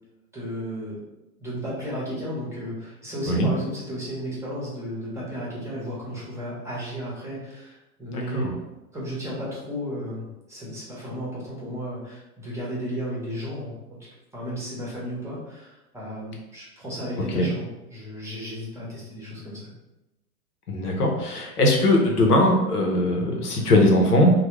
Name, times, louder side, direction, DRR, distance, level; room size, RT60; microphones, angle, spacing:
voice 1, 0.3-1.0 1.4-8.5 8.9-13.7 14.3-19.7, equal, 5° right, -6 dB, 0.9 m, -34 dB
voice 2, 8.1-8.5 17.3-17.5 20.7-24.3, left 1 dB, 85° left, 0 dB, 0.8 m, -20 dB
3.2 x 2.2 x 3.1 m, 0.98 s
figure-of-eight pair, 100°, 45 cm